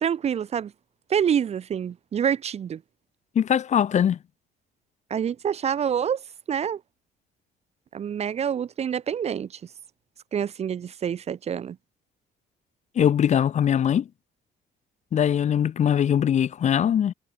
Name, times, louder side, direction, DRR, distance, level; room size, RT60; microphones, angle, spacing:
voice 1, 0.0-0.7 1.1-2.8 5.1-6.2 6.5-6.8 7.9-9.6 10.3-11.8, right 8 dB, 40° right, 0.7 m, -27 dB
voice 2, 3.3-4.2 13.0-14.1 15.1-17.1, left 9 dB, 45° left, 1.0 m, -21 dB
cardioid pair, 110°, 17 cm